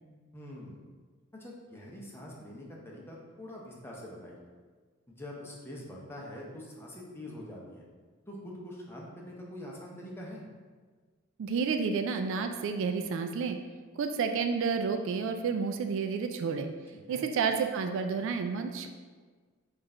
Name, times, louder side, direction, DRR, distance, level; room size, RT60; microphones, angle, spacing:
voice 1, 0.3-0.8 1.4-4.4 5.2-7.9 8.3-10.4 16.9-17.3, left 1 dB, 10° left, -3 dB, 0.7 m, -44 dB
voice 2, 11.4-13.6 14.0-16.7 17.1-18.9, right 5 dB, 65° right, 6 dB, 0.3 m, -30 dB
4.4 x 2.5 x 4.3 m, 1.5 s
head